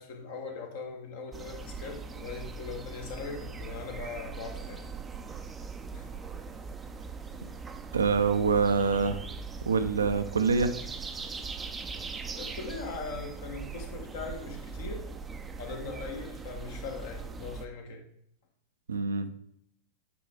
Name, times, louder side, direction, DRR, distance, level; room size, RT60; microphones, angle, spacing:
voice 1, 0.0-4.9 5.9-6.1 12.3-15.0 15.6-18.0, left 4 dB, 55° left, 2 dB, 1.7 m, -40 dB
sound 1, 1.3-17.7, right 4 dB, 15° right, 0.6 m, -40 dB
voice 2, 7.9-9.2 9.6-10.7 18.9-19.3, right 5 dB, 70° right, 9 dB, 0.6 m, -25 dB
8.4 x 4.7 x 3.8 m, 0.69 s
figure-of-eight pair, 90°, 0 cm